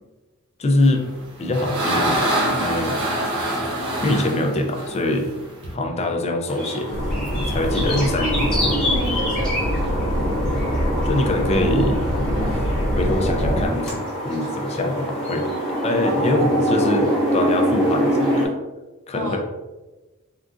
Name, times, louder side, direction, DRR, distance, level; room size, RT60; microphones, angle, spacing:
voice 1, 0.6-1.1 1.4-3.0 4.0-5.3 5.7-7.0 7.5-8.5 11.0-12.0 12.5-12.6 13.0-15.5 15.8-17.1 17.3-18.5 19.1-19.4, left 1 dB, 30° left, 3 dB, 0.4 m, -23 dB
sound 1, 1.0-5.7, right 1 dB, 75° right, 1.1 m, -25 dB
sound 2, 6.5-18.5, equal, 5° left, 0.8 m, -25 dB
sound 3, 6.9-13.7, equal, 75° left, 0.6 m, -24 dB
voice 2, 7.9-10.0 16.0-17.2 19.1-19.4, right 1 dB, 60° right, 1 dB, 0.6 m, -29 dB
3.7 x 2.3 x 2.5 m, 1.1 s
head